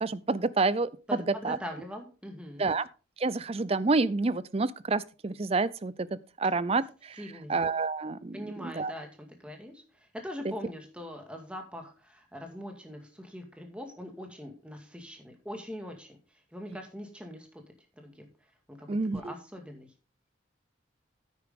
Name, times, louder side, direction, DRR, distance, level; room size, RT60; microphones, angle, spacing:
voice 1, 0.0-0.9 1.4-1.6 2.6-2.8 3.2-6.1 6.4-7.2 7.5-8.9 10.4-10.5 18.9-19.3, right 3 dB, 30° right, 0.5 m, -28 dB
voice 2, 1.1-2.7 7.2-7.5 8.3-16.2 16.5-18.3 18.7-18.9 19.1-19.9, equal, 5° right, 2.1 m, -42 dB
9.6 x 9.5 x 3.7 m
head